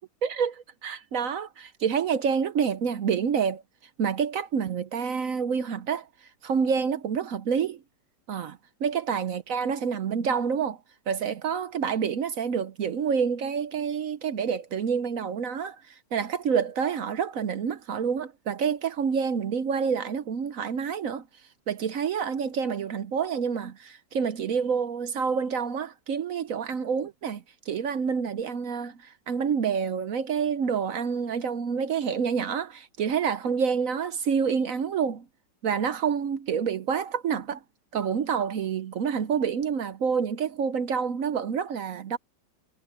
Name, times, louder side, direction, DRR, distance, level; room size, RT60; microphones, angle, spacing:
voice 1, 0.2-3.6 4.0-6.1 6.4-7.8 8.3-10.8 11.1-21.2 21.7-35.3 35.6-37.6 37.9-42.2, right 6 dB, 60° right, 1.0 m, -28 dB
omnidirectional pair, 2.0 m